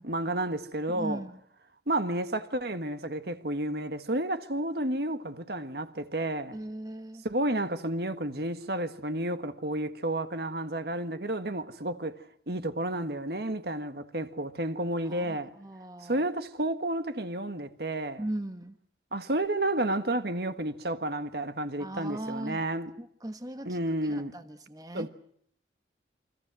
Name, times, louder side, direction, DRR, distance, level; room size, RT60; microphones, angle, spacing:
voice 1, 0.1-1.2 1.9-6.6 7.2-12.2 12.5-15.5 16.0-18.2 19.1-22.9 23.6-24.3 24.9-25.1, right 1 dB, 60° right, 1.6 m, -31 dB
voice 2, 0.9-1.4 6.5-7.2 15.0-16.3 18.2-18.8 21.8-22.6 23.0-25.1, right 1 dB, 20° right, 1.1 m, -39 dB
29.0 x 24.0 x 6.2 m
head